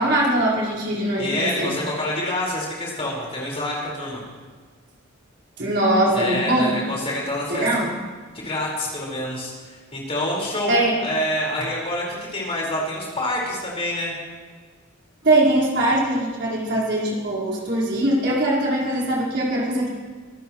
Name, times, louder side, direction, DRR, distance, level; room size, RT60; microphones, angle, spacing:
voice 1, 0.0-1.7 5.6-6.8 7.5-7.9 10.7-11.0 15.2-19.9, right 1 dB, 50° right, -5 dB, 4.6 m, -21 dB
voice 2, 1.2-4.2 6.1-7.8 8.4-10.7 11.0-14.1, left 1 dB, 25° left, -3 dB, 4.8 m, -27 dB
25.0 x 15.0 x 3.1 m, 1.5 s
head